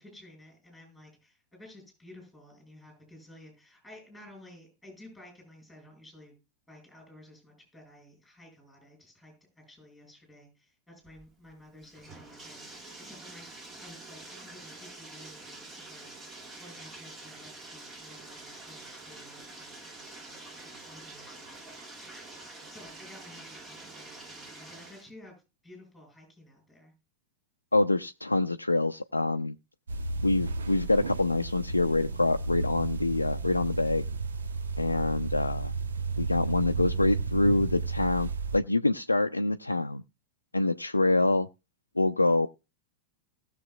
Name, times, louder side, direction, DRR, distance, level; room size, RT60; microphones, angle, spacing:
voice 1, 0.0-6.3 6.7-13.5 13.8-16.3 16.6-25.4 25.6-26.9, left 1 dB, ahead, 6.8 m, -53 dB
Bathtub (filling or washing), 11.1-25.1, right 2 dB, 20° right, 1.6 m, -47 dB
voice 2, 27.7-29.6 30.2-34.1 34.8-35.7 36.2-40.0 40.5-41.5 42.0-42.5, left 2 dB, 80° left, 0.4 m, -26 dB
sound 1, 29.9-38.6, right 4 dB, 70° right, 0.8 m, -33 dB
19.0 x 6.8 x 2.4 m
figure-of-eight pair, 90°, 0 cm